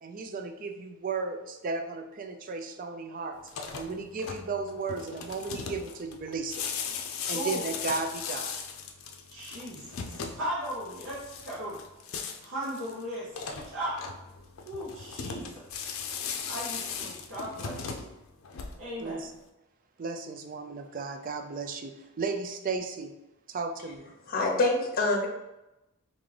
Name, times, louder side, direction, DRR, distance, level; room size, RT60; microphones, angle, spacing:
voice 1, 0.0-3.4 3.7-6.7 7.3-8.6 19.0-19.3 20.0-23.1 23.5-24.1, right 4 dB, 40° right, 6 dB, 0.4 m, -34 dB
sound 1, 3.4-19.1, left 6 dB, 85° left, 0.4 m, -38 dB
voice 2, 7.3-7.7 9.3-11.8 12.4-14.0 14.6-15.7 16.5-18.1 18.8-19.2, equal, 70° right, -8 dB, 0.8 m, -37 dB
voice 3, 24.2-25.3, left 2 dB, 45° left, 1 dB, 0.7 m, -25 dB
3.7 x 2.5 x 3.2 m, 0.96 s
head